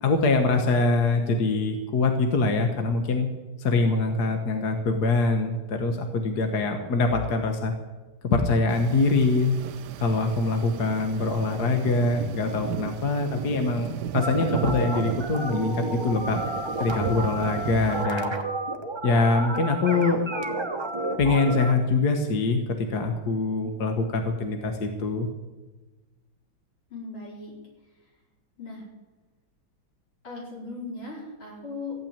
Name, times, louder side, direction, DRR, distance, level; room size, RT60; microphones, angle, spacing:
voice 1, 0.0-3.3 3.6-7.7 8.2-9.5 10.0-16.4 16.8-18.3 19.0-20.2 21.2-25.3, left 3 dB, 55° left, 5 dB, 1.6 m, -24 dB
sound 1, 8.7-18.1, right 10 dB, 70° right, 1.0 m, -35 dB
sound 2, 14.1-21.7, right 2 dB, 20° right, 0.8 m, -31 dB
voice 2, 26.9-27.5 28.6-28.8 30.2-31.9, left 3 dB, 75° left, -4 dB, 5.6 m, -38 dB
15.5 x 9.0 x 8.7 m, 1.2 s
omnidirectional pair, 2.3 m